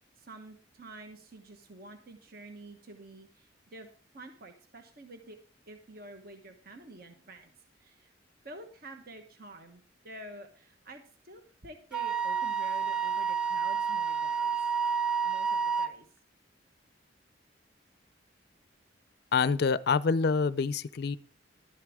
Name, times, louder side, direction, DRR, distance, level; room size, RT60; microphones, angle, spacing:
voice 1, 0.2-3.9 4.1-5.4 5.7-7.5 7.8-8.1 8.4-14.5 15.2-16.1, right 2 dB, 55° right, 1.2 m, -49 dB
Wind instrument woodwind instrument, 11.9-15.9, right 6 dB, 5° right, 0.5 m, -29 dB
voice 2, 19.3-21.2, left 5 dB, 55° left, 0.4 m, -26 dB
11.5 x 11.0 x 3.6 m
head